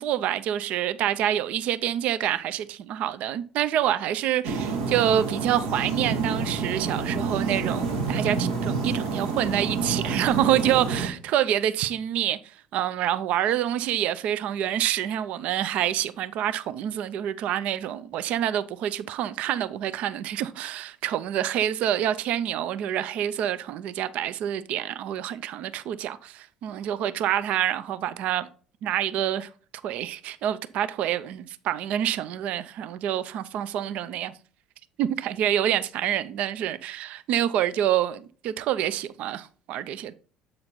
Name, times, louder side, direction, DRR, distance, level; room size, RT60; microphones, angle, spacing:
voice 1, 0.0-28.5 28.8-29.5 29.8-34.3 35.0-40.1, right 11 dB, 60° right, 0.5 m, -27 dB
sound 1, 4.4-11.1, right 4 dB, 80° right, 1.2 m, -28 dB
7.6 x 4.4 x 4.0 m
hypercardioid pair, 60°, 3 cm